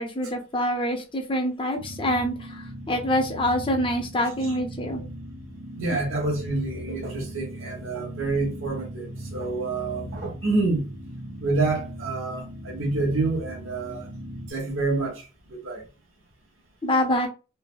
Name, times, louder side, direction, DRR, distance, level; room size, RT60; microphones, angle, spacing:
voice 1, 0.0-5.0 16.8-17.3, left 1 dB, 25° left, 0.6 m, -26 dB
sound 1, 1.8-14.5, equal, 65° right, 0.6 m, -38 dB
voice 2, 5.8-10.9 11.4-14.1 14.5-15.8, right 3 dB, 85° right, 1.0 m, -28 dB
3.3 x 2.1 x 2.3 m
head